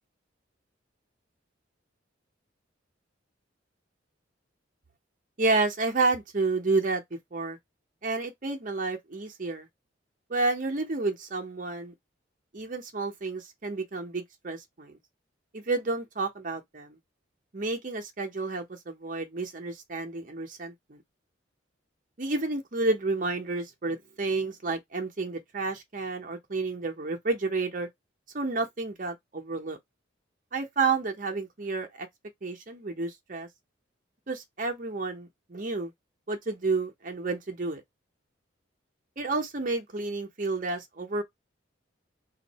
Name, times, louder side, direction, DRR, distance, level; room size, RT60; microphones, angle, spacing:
voice 1, 5.4-7.0 7.3-7.6 8.0-9.7 10.3-11.9 12.5-15.0 15.5-17.0 17.5-21.0 22.2-27.9 28.3-29.8 30.5-32.1 32.4-33.5 34.3-35.9 36.3-37.8 39.2-41.2, right 3 dB, 40° right, 0.7 m, -30 dB
2.7 x 2.5 x 4.0 m
head